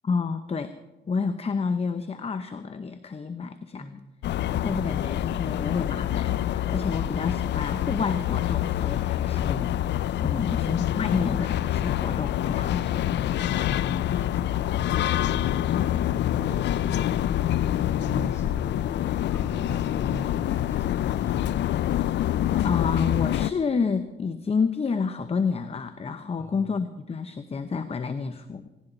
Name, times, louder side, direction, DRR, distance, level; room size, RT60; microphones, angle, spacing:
voice 1, 0.0-0.7 1.1-4.0 4.6-9.7 10.2-13.2 22.5-28.7, left 5 dB, 30° left, 10 dB, 0.8 m, -29 dB
sound 1, 4.2-23.5, left 12 dB, 60° left, 0.5 m, -26 dB
voice 2, 13.7-21.6 26.4-26.7, equal, 15° left, 2 dB, 5.0 m, -40 dB
18.5 x 17.0 x 4.0 m, 1.1 s
cardioid pair, 90°, 20 cm